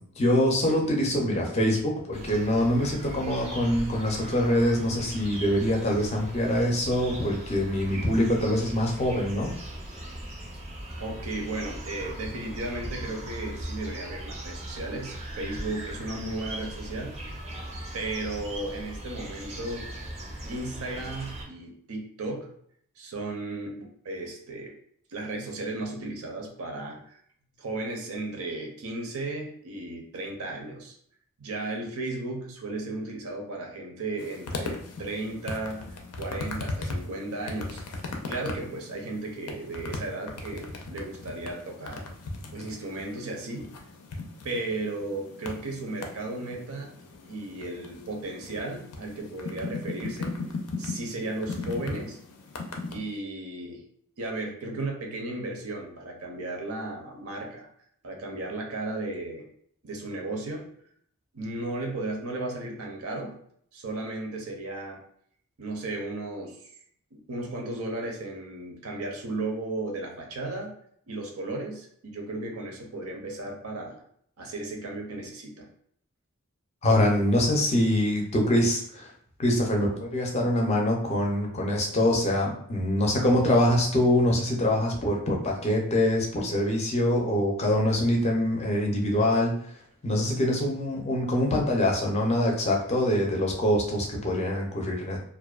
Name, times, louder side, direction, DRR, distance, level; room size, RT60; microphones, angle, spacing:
voice 1, 0.0-9.5 76.8-79.1 79.4-89.5 90.0-95.2, left 1 dB, 30° left, 0 dB, 0.4 m, -24 dB
sound 1, 2.1-21.4, right 1 dB, 30° right, 0.4 m, -39 dB
voice 2, 11.0-17.2 17.9-19.8 20.5-22.5 23.0-24.7 25.1-27.2 27.6-30.9 31.4-35.8 36.2-37.8 38.3-42.1 42.5-43.7 44.4-46.9 47.3-50.3 50.8-52.2 52.9-53.8 54.2-57.7 58.0-59.5 59.8-60.7 61.3-63.4 63.7-65.0 65.6-66.6 67.1-70.7 71.1-74.0 74.4-75.7, right 2 dB, 75° right, 1 dB, 0.6 m, -35 dB
sound 2, 34.2-53.0, left 3 dB, 90° left, 0.4 m, -38 dB
2.5 x 2.1 x 2.3 m, 0.65 s
head